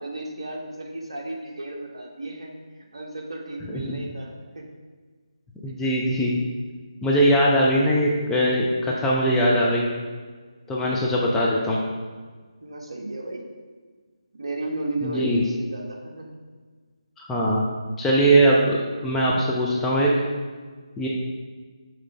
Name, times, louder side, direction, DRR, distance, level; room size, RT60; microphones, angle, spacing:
voice 1, 0.0-2.5 2.9-4.6 12.6-13.4 14.3-16.3, right 2 dB, 55° right, 0 dB, 1.1 m, -33 dB
voice 2, 5.6-6.3 7.0-9.9 10.7-11.8 15.0-15.4 17.2-17.6 18.0-20.1 21.0-21.1, right 1 dB, 5° left, -5 dB, 0.4 m, -21 dB
5.9 x 3.1 x 5.3 m, 1.5 s
figure-of-eight pair, 150°, 3 cm